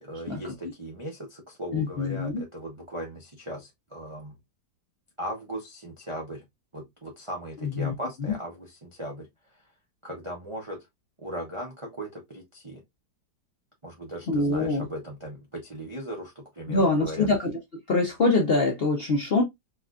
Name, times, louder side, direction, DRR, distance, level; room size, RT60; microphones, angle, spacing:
voice 1, 0.0-4.3 5.2-6.4 6.7-9.3 10.0-10.8 11.2-12.8 13.8-17.3, right 1 dB, 35° right, 0.5 m, -38 dB
voice 2, 1.7-2.4 7.6-7.9 8.2-8.3 14.3-14.8 16.7-17.6 17.9-19.4, left 3 dB, 50° left, 0.7 m, -24 dB
4.6 x 2.4 x 2.3 m
omnidirectional pair, 1.8 m